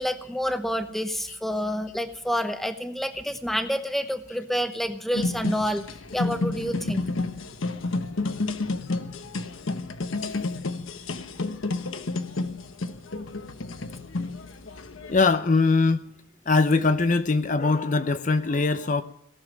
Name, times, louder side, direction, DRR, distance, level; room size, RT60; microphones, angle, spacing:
voice 1, 0.0-7.2, equal, ahead, 9 dB, 0.9 m, -28 dB
sound 1, 5.1-15.2, left 3 dB, 85° left, 1.0 m, -30 dB
voice 2, 15.1-16.0 16.5-19.0, left 3 dB, 40° left, 11 dB, 0.5 m, -22 dB
18.0 x 7.2 x 8.9 m, 0.74 s
head